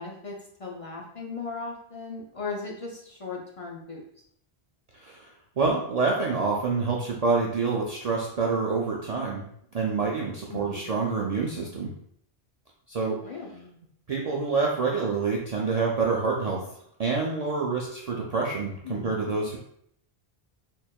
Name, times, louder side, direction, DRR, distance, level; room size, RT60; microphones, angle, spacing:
voice 1, 0.0-4.0 10.5-10.9 13.2-13.8 18.8-19.1, left 4 dB, 45° left, -1 dB, 0.5 m, -37 dB
voice 2, 5.6-9.4 9.7-11.9 12.9-13.2 14.1-16.6 17.0-19.6, right 4 dB, 50° right, -3 dB, 0.5 m, -27 dB
4.3 x 3.1 x 2.2 m, 0.70 s
omnidirectional pair, 1.1 m